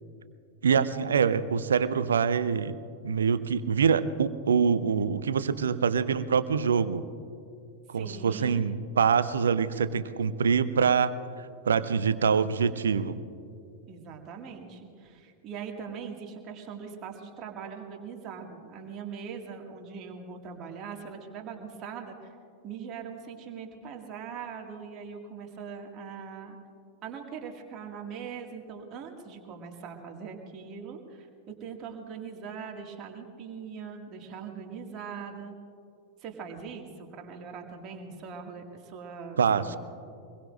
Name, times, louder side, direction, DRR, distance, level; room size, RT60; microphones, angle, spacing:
voice 1, 0.6-2.7 3.0-7.0 7.9-11.1 11.6-13.2 39.4-39.8, right 6 dB, 70° right, 15 dB, 0.6 m, -25 dB
voice 2, 7.9-8.7 13.9-22.3 22.6-26.6 27.0-35.5 36.2-39.8, right 6 dB, 35° right, 2 dB, 2.1 m, -41 dB
25.5 x 21.5 x 2.6 m, 2.5 s
figure-of-eight pair, 90°, 0 cm